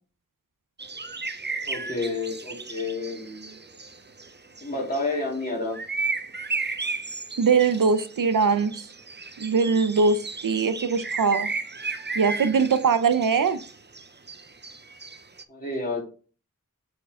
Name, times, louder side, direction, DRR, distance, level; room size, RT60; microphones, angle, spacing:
sound 1, 0.8-5.1 5.7-15.4, right 4 dB, 35° right, 0.7 m, -34 dB
voice 1, 1.7-3.5 4.6-5.8 15.5-16.0, left 2 dB, 30° left, -5 dB, 3.4 m, -30 dB
voice 2, 7.4-8.9 9.4-11.5 12.1-13.6, right 5 dB, 80° right, 11 dB, 0.6 m, -22 dB
6.8 x 4.5 x 3.6 m, 0.39 s
wide cardioid pair, 45°, 32 cm